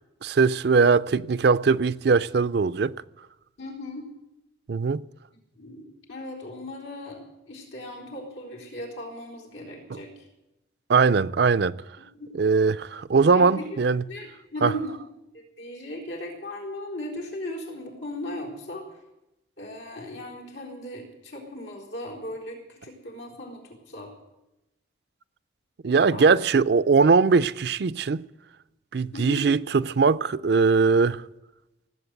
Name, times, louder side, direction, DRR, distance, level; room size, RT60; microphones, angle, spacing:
voice 1, 0.2-2.9 4.7-5.0 9.9-10.0 10.9-11.7 12.4-14.0 14.6-14.7 25.8-28.2 28.9-31.2, right 4 dB, 60° right, 0.4 m, -21 dB
voice 2, 3.6-4.1 5.6-10.1 12.0-12.3 13.3-13.7 14.1-15.0 15.3-18.8 19.6-24.1 26.1-26.3 29.1-29.5, left 1 dB, 85° left, 4.1 m, -37 dB
18.5 x 8.3 x 8.0 m
head